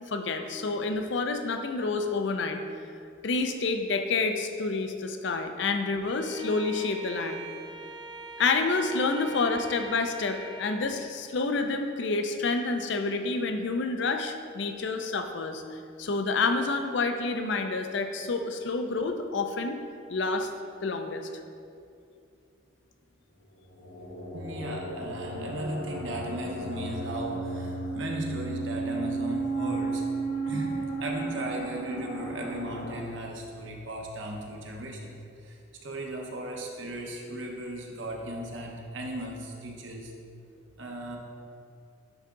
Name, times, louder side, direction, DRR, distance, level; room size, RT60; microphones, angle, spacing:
voice 1, 0.1-2.6 3.2-7.4 8.4-15.6 16.0-19.8 20.1-20.5 20.8-21.3, left 3 dB, 60° left, 7 dB, 0.5 m, -28 dB
Bowed string instrument, 6.0-10.9, right 2 dB, 20° right, 0.4 m, -43 dB
sound 1, 23.6-33.0, right 3 dB, 85° left, 1.6 m, -34 dB
voice 2, 24.3-30.1 30.5-40.1 40.8-41.2, right 1 dB, 65° right, 0 dB, 0.9 m, -37 dB
9.8 x 3.6 x 3.8 m, 2.5 s
head